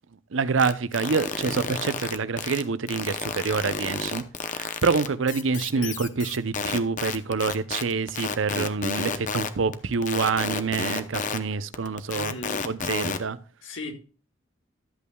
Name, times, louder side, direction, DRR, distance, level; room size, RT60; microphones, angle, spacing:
voice 1, 0.3-4.2 4.5-12.3 12.7-13.4, right 5 dB, 85° right, 0.6 m, -26 dB
sound 1, 0.6-2.6 2.9-11.4 11.7-13.2, left 5 dB, 40° left, 0.7 m, -30 dB
voice 2, 12.1-12.7 13.6-13.9, left 2 dB, 80° left, 1.8 m, -37 dB
12.5 x 8.4 x 2.3 m
head